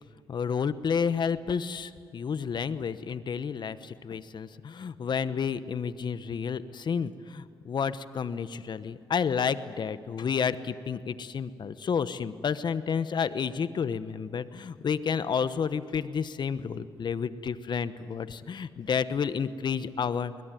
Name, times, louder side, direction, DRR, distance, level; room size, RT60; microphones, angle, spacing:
voice 1, 0.3-20.3, left 6 dB, 60° left, 13 dB, 1.1 m, -30 dB
21.5 x 21.0 x 9.2 m, 2.3 s
supercardioid pair, 60°, 9 cm